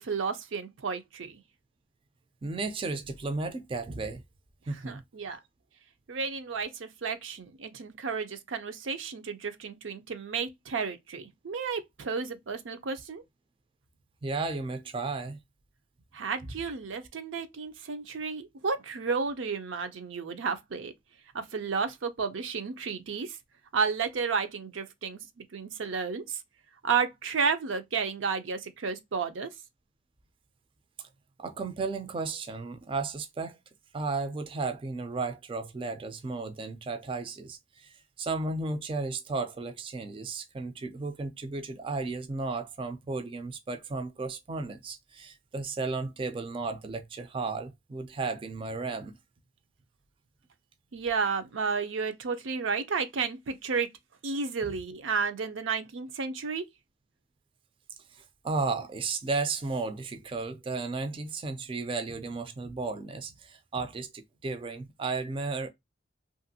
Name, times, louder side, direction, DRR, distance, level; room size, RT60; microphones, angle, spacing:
voice 1, 0.0-1.4 4.8-5.4 6.1-13.2 16.1-20.9 21.3-23.4 23.7-26.4 26.8-29.5 50.9-53.9 54.2-56.6, right 5 dB, 85° right, 0.5 m, -32 dB
voice 2, 2.4-4.2 4.7-5.0 14.2-15.4 31.4-33.6 33.9-49.1 58.1-65.7, right 3 dB, 30° right, 0.3 m, -34 dB
2.8 x 2.5 x 2.7 m
head